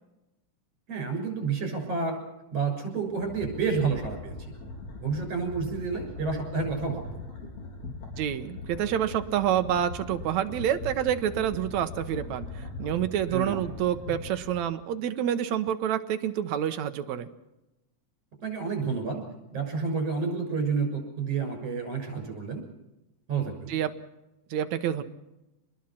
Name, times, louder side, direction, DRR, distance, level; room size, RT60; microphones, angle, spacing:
voice 1, 0.9-2.2 2.5-4.3 5.0-7.2 13.3-13.6 18.4-22.6 23.3-23.7, right 5 dB, 50° right, 4 dB, 7.2 m, -30 dB
sound 1, 3.1-14.6, left 3 dB, 55° left, 5.5 m, -40 dB
voice 2, 8.2-17.3 23.7-23.9 24.5-25.0, right 10 dB, 70° right, 9 dB, 2.2 m, -28 dB
27.0 x 20.5 x 6.0 m, 0.94 s
omnidirectional pair, 3.7 m